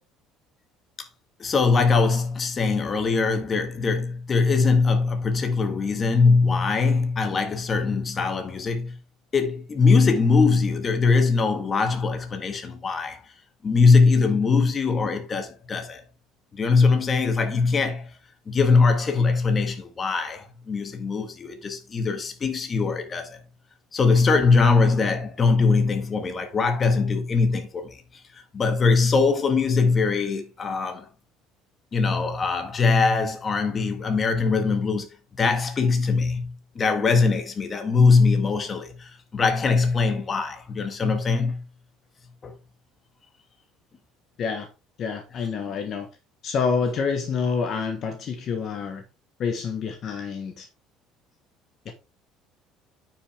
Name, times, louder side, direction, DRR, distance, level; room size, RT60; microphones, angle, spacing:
voice 1, 1.4-9.0 9.3-13.2 13.6-16.0 16.5-18.1 18.5-23.4 23.9-31.1 31.9-35.1 35.4-41.6 42.4-42.5, left 4 dB, 25° left, 1.6 m, -22 dB
voice 2, 45.0-46.1 46.4-49.0 49.4-50.7 51.8-51.9, left 5 dB, 40° left, 1.3 m, -27 dB
9.2 x 6.1 x 3.5 m
cardioid pair, 145°, 0 cm